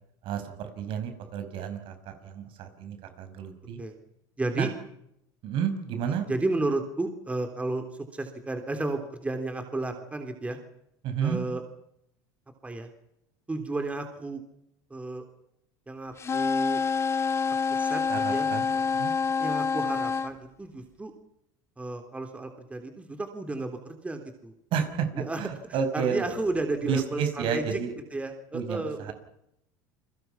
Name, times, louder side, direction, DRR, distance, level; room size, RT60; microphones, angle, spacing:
voice 1, 0.2-3.8 4.5-4.7 5.4-6.3 11.0-11.4 18.1-18.6 18.9-19.1 24.7-26.3 26.8-27.9 28.5-29.1, right 7 dB, 60° right, 8 dB, 5.7 m, -31 dB
voice 2, 4.4-4.7 6.1-7.8 8.1-10.6 11.2-11.6 12.6-12.9 13.5-14.4 14.9-15.2 15.9-16.8 17.7-18.0 18.3-18.8 19.4-21.1 21.8-24.5 25.1-27.8 28.1-29.1, right 2 dB, 15° right, 6 dB, 3.3 m, -33 dB
sound 1, 16.2-20.3, left 5 dB, 25° left, 2.6 m, -27 dB
29.5 x 23.0 x 5.8 m, 0.80 s
supercardioid pair, 110°, 10 cm